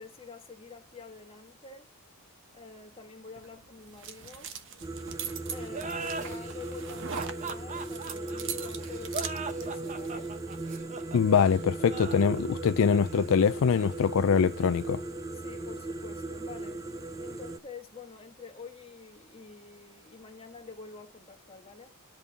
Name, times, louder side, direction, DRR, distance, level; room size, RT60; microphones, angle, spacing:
voice 1, 0.0-1.9 2.5-4.5 5.5-10.4 15.3-21.9, left 5 dB, 25° left, 1.6 m, -47 dB
sound 1, 3.4-10.8, right 7 dB, 55° right, 1.1 m, -42 dB
sound 2, 4.8-17.6, right 2 dB, 15° right, 0.5 m, -37 dB
sound 3, 5.7-15.0, right 4 dB, 35° right, 1.1 m, -41 dB
voice 2, 11.1-15.0, left 6 dB, 65° left, 0.4 m, -24 dB
10.5 x 5.3 x 5.7 m
head